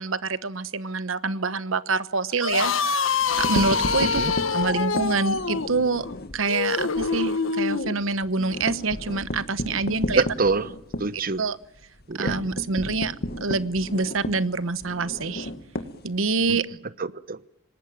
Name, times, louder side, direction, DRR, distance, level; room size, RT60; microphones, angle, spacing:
voice 1, 0.0-2.7 3.4-4.2 4.5-6.1 6.3-10.2 11.4-11.6 12.1-13.1 13.4-15.5 16.0-16.7, right 3 dB, 75° right, 1.1 m, -26 dB
sound 1, 2.3-8.0, left 4 dB, 70° left, 1.5 m, -25 dB
rub-the-glass, 3.2-6.4 6.8-7.0 7.3-7.4 7.7-16.6, left 1 dB, 55° left, 1.9 m, -33 dB
voice 2, 4.0-4.3 10.1-10.7 11.0-11.4 12.1-12.3 16.5-16.6 17.0-17.4, right 3 dB, 45° right, 0.9 m, -25 dB
27.0 x 19.5 x 9.1 m
head